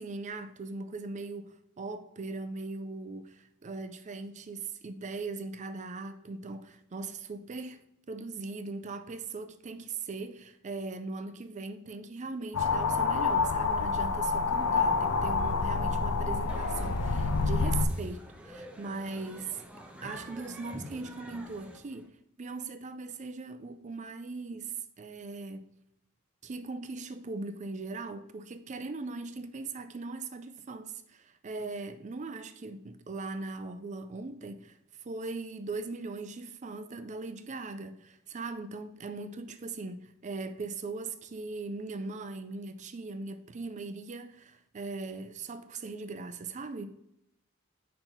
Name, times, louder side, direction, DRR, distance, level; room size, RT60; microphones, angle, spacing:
voice 1, 0.0-19.6 20.0-22.1 22.4-25.7 26.4-34.8 35.0-46.9, right 3 dB, 35° right, 0.4 m, -39 dB
sound 1, 12.5-17.9, left 4 dB, 75° left, 0.6 m, -27 dB
sound 2, 14.2-22.1, equal, 5° right, 0.7 m, -46 dB
5.2 x 4.5 x 5.4 m
head